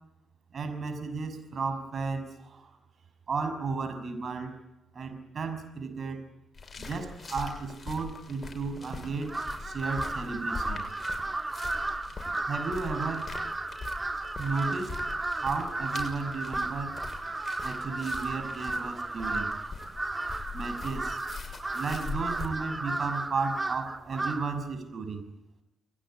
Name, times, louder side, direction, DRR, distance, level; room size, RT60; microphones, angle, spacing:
voice 1, 0.5-2.8 3.3-4.6 4.9-6.2 6.8-10.9 12.5-13.3 14.4-14.9 15.4-17.0 17.6-19.5 20.5-21.2 21.7-25.3, right 4 dB, 50° right, 8 dB, 6.2 m, -34 dB
sound 1, 6.5-22.5, left 4 dB, 35° left, 6.7 m, -42 dB
Crow, 9.3-24.6, right 2 dB, 20° right, 1.6 m, -34 dB
29.0 x 21.5 x 8.8 m, 0.89 s
figure-of-eight pair, 40°, 0 cm